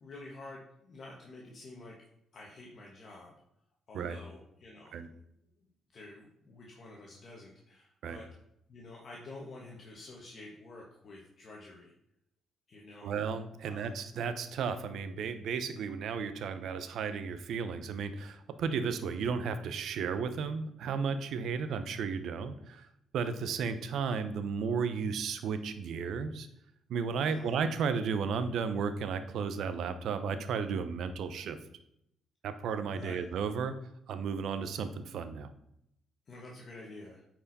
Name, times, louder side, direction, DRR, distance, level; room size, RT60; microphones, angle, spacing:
voice 1, 0.0-1.9 2.3-3.3 3.9-5.0 5.9-8.2 8.7-11.9 12.7-13.1 13.6-14.0 27.2-27.5 32.9-33.2 36.3-37.2, left 2 dB, 50° left, -2 dB, 1.5 m, -49 dB
voice 2, 13.0-22.9 23.1-26.5 26.9-31.6 32.4-33.7 34.1-35.5, right 6 dB, 75° right, 10 dB, 0.8 m, -34 dB
9.0 x 4.8 x 4.2 m, 0.76 s
cardioid pair, 90°, 0 cm